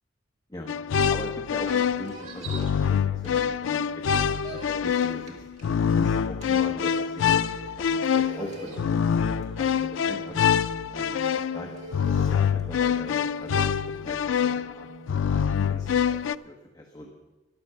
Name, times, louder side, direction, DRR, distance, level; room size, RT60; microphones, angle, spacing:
sound 1, 0.7-16.4, left 7 dB, 85° left, 0.4 m, -25 dB
voice 1, 1.1-5.3 5.9-7.5 7.8-10.3 10.9-11.7 12.0-14.9 15.2-16.0 16.4-17.1, left 1 dB, 20° left, 0 dB, 1.3 m, -41 dB
sound 2, 1.4-3.7 4.0-16.3, right 2 dB, 40° right, 2.3 m, -45 dB
sound 3, 6.2-15.1, right 3 dB, 55° right, 0.6 m, -46 dB
13.5 x 11.5 x 5.7 m, 1.2 s
head